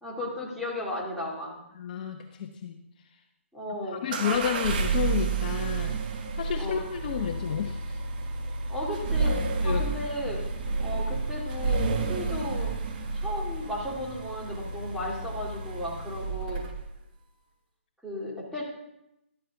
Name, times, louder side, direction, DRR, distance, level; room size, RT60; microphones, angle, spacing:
voice 1, 0.0-1.6 3.5-4.0 6.6-6.8 8.7-10.4 10.8-12.8 13.1-16.7 18.0-18.7, left 1 dB, ahead, -5 dB, 2.4 m, -35 dB
voice 2, 1.7-2.8 3.9-6.0 6.3-8.0 9.6-9.8, left 8 dB, 40° left, 4 dB, 0.9 m, -31 dB
sound 1, 4.1-17.0, right 3 dB, 40° right, 1.5 m, -30 dB
13.5 x 12.0 x 3.5 m, 0.85 s
hypercardioid pair, 150°, 7 cm